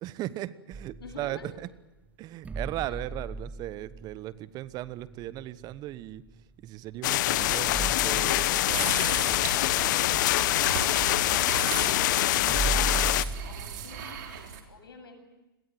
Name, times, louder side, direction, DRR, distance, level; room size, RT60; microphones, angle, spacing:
voice 1, 0.0-1.7 2.2-6.2 6.6-9.0, right 14 dB, 35° right, 17 dB, 1.0 m, -37 dB
sound 1, 0.7-1.6 2.4-6.4 6.9-7.0 7.3-14.2, right 3 dB, 10° right, 0.8 m, -38 dB
voice 2, 1.0-1.5 2.9-3.0 13.5-15.2, left 3 dB, 75° left, 6 dB, 8.0 m, -47 dB
sound 2, 7.0-13.2, left 15 dB, 50° left, 1.1 m, -25 dB
sound 3, 8.7-14.6, right 8 dB, 55° right, 4.0 m, -37 dB
30.0 x 22.0 x 7.7 m, 1.0 s
hypercardioid pair, 110°, 12 cm